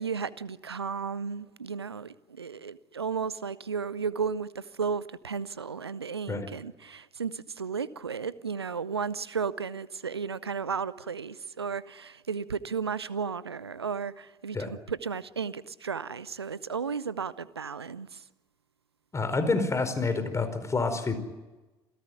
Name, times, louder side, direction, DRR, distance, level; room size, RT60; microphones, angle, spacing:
voice 1, 0.0-18.2, right 6 dB, 85° right, 0.7 m, -34 dB
voice 2, 19.1-21.2, left 3 dB, 20° left, 4.8 m, -28 dB
27.5 x 17.5 x 9.5 m
figure-of-eight pair, 55°, 13 cm